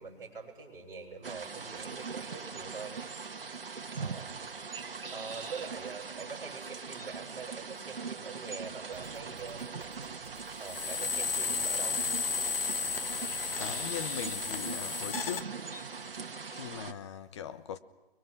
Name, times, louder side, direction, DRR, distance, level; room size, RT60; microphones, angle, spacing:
voice 1, 0.0-3.0 4.0-4.3 5.1-9.6 10.6-12.0, right 5 dB, 10° right, 5.8 m, -44 dB
sound 1, 1.2-16.9, right 5 dB, 65° right, 1.7 m, -41 dB
sound 2, 8.9-14.5, right 6 dB, 30° right, 4.8 m, -55 dB
sound 3, 10.6-15.4, left 5 dB, 65° left, 1.5 m, -33 dB
voice 2, 13.6-15.5 16.5-17.8, left 9 dB, 30° left, 1.0 m, -40 dB
30.0 x 22.0 x 6.3 m
figure-of-eight pair, 140°, 30 cm